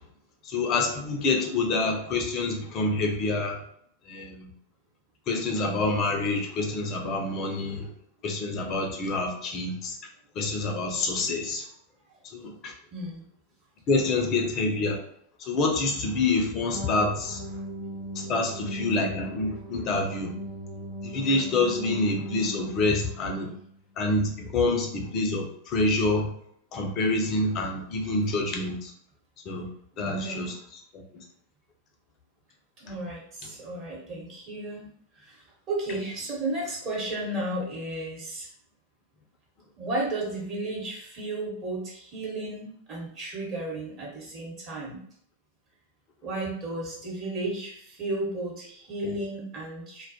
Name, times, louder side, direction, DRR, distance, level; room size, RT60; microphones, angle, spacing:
voice 1, 0.5-3.6 4.1-4.5 5.3-7.9 8.2-9.9 10.4-11.6 12.3-12.7 13.9-15.0 15.5-17.4 18.2-20.3 21.0-23.5 24.0-26.3 26.7-28.9 29.5-29.7 30.0-30.5 30.9-31.0, left 3 dB, 35° left, 3 dB, 0.4 m, -27 dB
voice 2, 12.9-13.2 30.0-30.5 32.8-38.5 39.8-45.0 46.2-50.0, right 2 dB, 35° right, -4 dB, 0.9 m, -33 dB
sound 1, 16.7-23.8, right 1 dB, 65° right, 0.6 m, -38 dB
2.2 x 2.0 x 2.7 m, 0.65 s
figure-of-eight pair, 90°, 0 cm